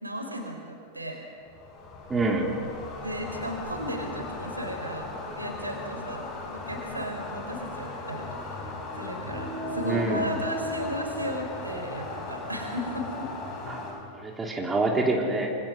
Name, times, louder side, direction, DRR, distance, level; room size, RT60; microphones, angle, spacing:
voice 1, 0.0-1.2 3.0-5.1 5.4-13.3, equal, 85° right, 3 dB, 4.0 m, -35 dB
sound 1, 1.4-13.9, left 3 dB, 35° left, 6.1 m, -38 dB
voice 2, 2.1-2.5 9.8-10.3 13.7-13.8 14.1-15.6, right 2 dB, 15° right, 1 dB, 3.0 m, -26 dB
sound 2, 9.2-14.1, equal, 75° left, 4.9 m, -38 dB
26.0 x 25.0 x 6.3 m, 2.3 s
figure-of-eight pair, 90°, 0 cm